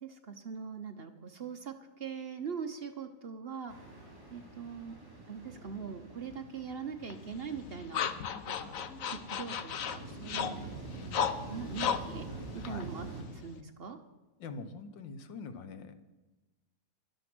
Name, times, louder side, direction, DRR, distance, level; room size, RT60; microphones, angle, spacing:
voice 1, 0.0-1.7 2.0-3.7 4.3-5.0 5.3-8.1 8.5-8.7 9.1-10.7 11.5-12.3 12.5-14.0, right 6 dB, 50° right, 6 dB, 0.7 m, -41 dB
sound 1, 3.7-13.2, right 3 dB, 10° right, 3.5 m, -46 dB
sound 2, 7.1-13.6, left 8 dB, 60° left, 1.0 m, -36 dB
voice 2, 14.4-16.0, left 4 dB, 80° left, 10 dB, 1.7 m, -44 dB
12.5 x 11.5 x 6.1 m, 1.1 s
omnidirectional pair, 2.0 m